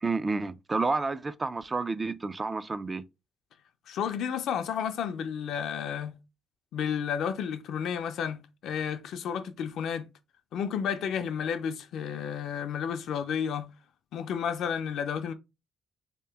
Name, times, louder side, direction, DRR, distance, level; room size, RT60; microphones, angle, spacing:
voice 1, 0.0-3.0, right 3 dB, 25° right, 0.3 m, -30 dB
voice 2, 3.9-6.2 6.7-10.1 10.5-13.7 14.1-15.3, left 8 dB, 75° left, 0.4 m, -32 dB
3.2 x 2.9 x 3.4 m
cardioid pair, 90°, 0 cm